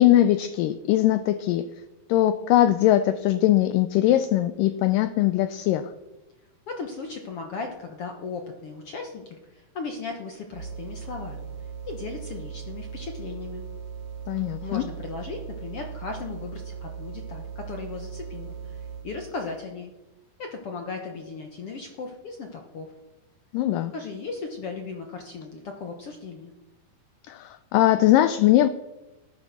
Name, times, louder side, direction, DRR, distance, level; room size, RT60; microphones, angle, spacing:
voice 1, 0.0-1.7 2.1-5.9 14.3-14.8 23.5-23.9 27.3-28.7, left 13 dB, 80° left, 12 dB, 2.1 m, -21 dB
voice 2, 6.7-11.5 11.9-13.6 14.6-19.9 20.4-22.9 23.9-26.5, left 4 dB, 60° left, 4 dB, 1.5 m, -37 dB
sound 1, 10.5-19.2, right 6 dB, 65° right, 2.4 m, -38 dB
13.5 x 11.5 x 6.6 m, 1.1 s
omnidirectional pair, 4.2 m